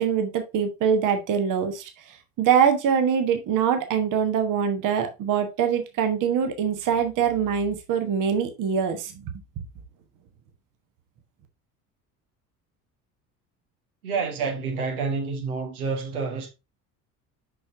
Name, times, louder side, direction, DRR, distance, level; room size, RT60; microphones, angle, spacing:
voice 1, 0.0-1.9 2.4-9.1, right 7 dB, 40° right, 1.3 m, -23 dB
voice 2, 14.0-16.5, right 4 dB, 70° right, 1.4 m, -28 dB
6.1 x 5.9 x 3.5 m
figure-of-eight pair, 60°, 46 cm